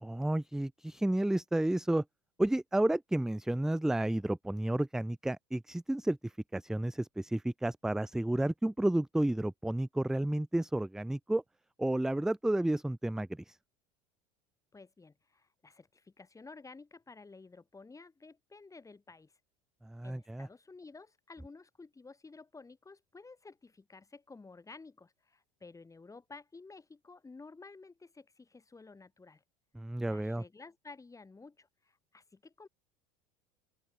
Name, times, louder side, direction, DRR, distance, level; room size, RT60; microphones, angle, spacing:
voice 1, 0.0-2.0 2.4-11.4 11.8-13.6 19.8-20.5 29.7-30.4, right 1 dB, 5° right, 0.3 m, -31 dB
voice 2, 14.7-19.3 20.0-29.4 30.0-32.7, left 3 dB, 15° left, 4.8 m, -53 dB
open air
hypercardioid pair, 80°, 19 cm